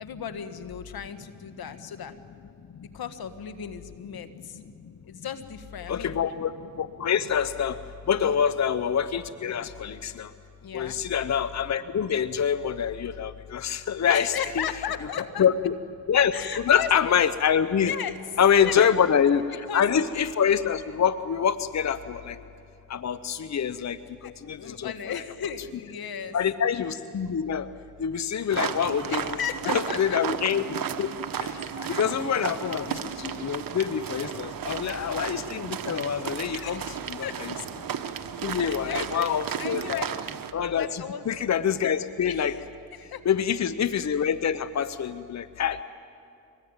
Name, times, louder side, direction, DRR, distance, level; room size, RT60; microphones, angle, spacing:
voice 1, 0.0-2.1 2.9-4.6 5.1-6.2 8.2-8.4 10.6-11.0 14.0-15.4 16.3-17.2 17.7-18.2 18.5-18.9 19.2-19.3 19.7-19.8 24.2-24.3 24.6-26.4 29.0-30.2 31.8-32.0 34.5-34.6 36.5-37.4 38.5-39.3 39.6-40.1 40.7-41.3 42.2-42.6 43.0-43.2, left 8 dB, 75° left, 10 dB, 1.6 m, -35 dB
voice 2, 5.9-6.5 6.8-7.8 8.1-10.3 10.7-14.6 15.4-15.7 16.1-17.9 18.4-22.4 22.9-24.0 24.2-24.9 26.3-27.7 28.0-29.4 29.7-31.1 31.4-31.5 31.9-36.8 37.1-37.5 38.4-40.0 40.5-42.5 43.3-45.8, left 8 dB, 45° left, 13 dB, 0.8 m, -25 dB
sound 1, 28.5-40.5, right 8 dB, 65° right, 1.2 m, -34 dB
24.5 x 20.0 x 8.9 m, 2.6 s
cardioid pair, 60°, 37 cm